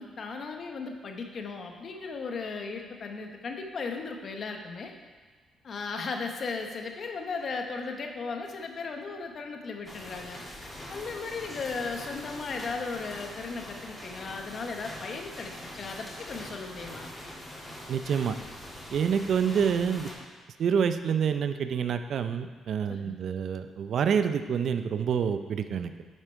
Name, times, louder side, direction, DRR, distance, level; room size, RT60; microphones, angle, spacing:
voice 1, 0.0-4.9 5.6-17.1 22.9-23.1, left 4 dB, 50° left, 4 dB, 1.1 m, -36 dB
sound 1, 9.8-20.1, left 1 dB, 25° left, 3.0 m, -43 dB
voice 2, 17.9-18.4 18.9-20.1 20.6-25.9, right 7 dB, 65° right, 10 dB, 0.5 m, -27 dB
10.5 x 5.1 x 4.5 m, 1.4 s
cardioid pair, 90°, 0 cm